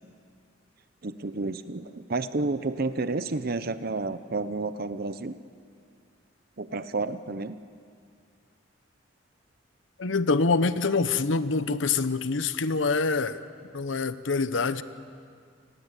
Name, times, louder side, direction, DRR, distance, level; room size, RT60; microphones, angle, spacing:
voice 1, 1.0-5.4 6.6-7.6, right 3 dB, 50° right, 12 dB, 0.8 m, -30 dB
voice 2, 10.0-13.4 13.7-14.8, left 4 dB, 80° left, 13 dB, 0.9 m, -25 dB
29.0 x 20.0 x 8.3 m, 2.2 s
head